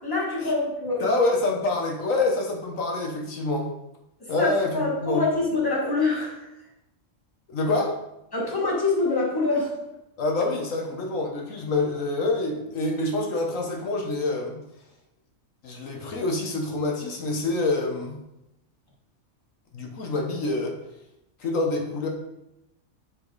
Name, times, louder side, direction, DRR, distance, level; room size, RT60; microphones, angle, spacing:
voice 1, 0.0-1.2 4.2-6.5 8.3-9.8, left 3 dB, 15° left, -4 dB, 1.7 m, -25 dB
voice 2, 1.0-3.7 4.3-5.2 7.5-7.9 10.2-14.6 15.6-18.2 19.7-20.7 21.4-22.1, left 2 dB, 80° left, 1 dB, 1.5 m, -26 dB
8.3 x 4.9 x 4.0 m, 0.88 s
omnidirectional pair, 1.4 m